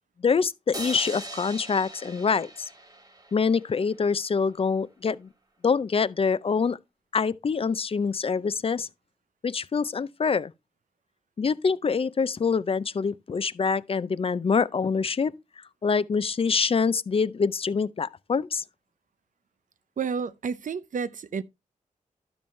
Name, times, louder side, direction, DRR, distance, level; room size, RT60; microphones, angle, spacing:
voice 1, 0.2-2.7 3.3-5.3 5.6-6.8 7.1-8.9 9.4-10.5 11.4-15.3 15.8-18.6, left 5 dB, 40° left, 0.5 m, -25 dB
sound 1, 0.7-4.0, right 1 dB, 25° right, 1.3 m, -40 dB
voice 2, 20.0-21.4, right 6 dB, 65° right, 0.6 m, -30 dB
12.0 x 7.0 x 3.2 m
wide cardioid pair, 135°, 14 cm